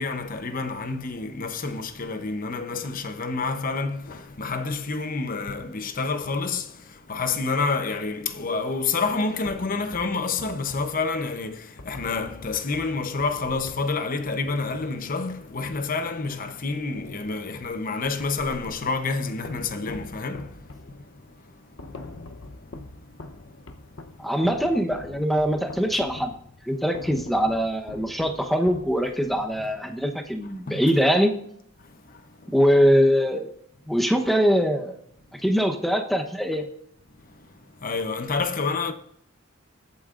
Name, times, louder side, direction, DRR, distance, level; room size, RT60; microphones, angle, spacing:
voice 1, 0.0-21.2 21.5-23.6 23.9-24.3 30.7-30.8 31.8-32.5 37.2-38.9, left 4 dB, 45° left, 0.8 m, -29 dB
sound 1, 9.4-16.6 16.9-19.0 19.4-29.4, left 2 dB, 75° left, 0.9 m, -44 dB
voice 2, 24.2-26.3 26.6-31.3 32.5-33.5 33.9-34.9 35.3-36.7, equal, ahead, 0.9 m, -22 dB
21.5 x 8.3 x 2.5 m
head